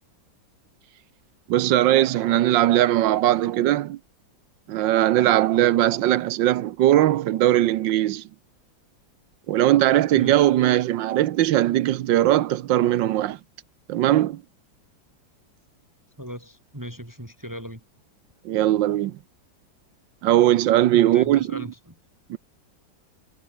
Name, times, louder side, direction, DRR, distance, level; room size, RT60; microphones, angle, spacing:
voice 1, 1.5-4.0 4.7-8.2 9.5-13.4 13.9-14.4 18.4-19.2 20.2-21.6 22.3-22.4, right 13 dB, 75° right, 1.4 m, -20 dB
voice 2, 16.2-17.8 20.9-22.0, equal, 10° right, 3.5 m, -38 dB
omnidirectional pair, 2.1 m